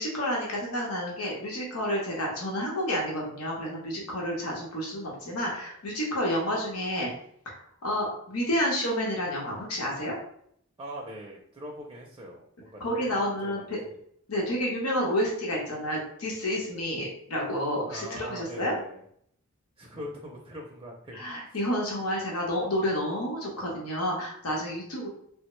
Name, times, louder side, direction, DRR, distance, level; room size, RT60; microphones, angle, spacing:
voice 1, 0.0-7.1 7.5-10.1 12.8-13.8 14.3-18.8 21.1-25.1, equal, 90° left, -2 dB, 0.9 m, -30 dB
voice 2, 10.8-13.9 17.9-19.0 19.8-21.2, equal, 20° right, -1 dB, 0.5 m, -42 dB
3.3 x 2.1 x 3.0 m, 0.67 s
head